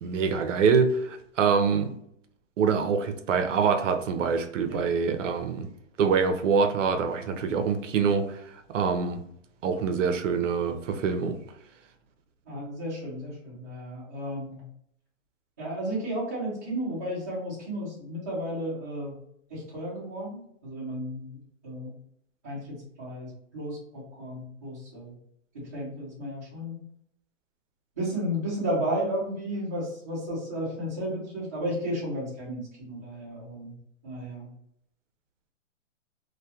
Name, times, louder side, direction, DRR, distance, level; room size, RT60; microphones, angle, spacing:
voice 1, 0.0-1.9 2.6-5.7 6.0-8.4 8.7-9.2 9.6-11.4, right 5 dB, 75° right, 0.5 m, -25 dB
voice 2, 12.5-14.6 15.6-19.1 19.5-21.9 22.4-25.1 25.7-26.8 28.0-33.7 34.0-34.5, equal, 15° right, 0.4 m, -33 dB
2.2 x 2.2 x 2.7 m
hypercardioid pair, 160°, 37 cm